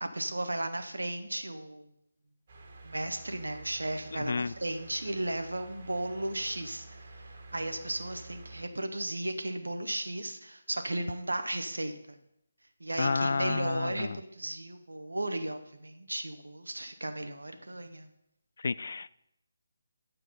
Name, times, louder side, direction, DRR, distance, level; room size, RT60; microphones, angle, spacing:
voice 1, 0.0-1.9 2.8-12.2 12.8-18.1, right 1 dB, 75° right, 7 dB, 1.0 m, -35 dB
sound 1, 2.5-8.6, right 2 dB, 40° right, 1.7 m, -50 dB
voice 2, 4.1-4.5 13.0-14.2 18.6-19.1, left 4 dB, 55° left, 18 dB, 0.3 m, -30 dB
9.0 x 7.1 x 5.4 m, 0.79 s
figure-of-eight pair, 150°, 0 cm